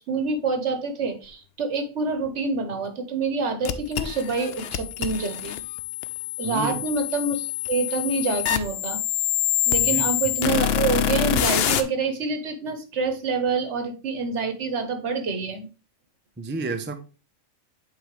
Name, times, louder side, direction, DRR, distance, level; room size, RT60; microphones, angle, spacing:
voice 1, 0.0-5.6 6.4-9.0 9.7-15.7, right 4 dB, 70° right, 1.4 m, -27 dB
sound 1, 3.6-11.8, left 11 dB, 65° left, 0.7 m, -26 dB
voice 2, 6.4-6.8 9.8-10.1 16.4-17.0, right 4 dB, 15° right, 0.3 m, -30 dB
8.4 x 3.9 x 3.2 m
omnidirectional pair, 1.3 m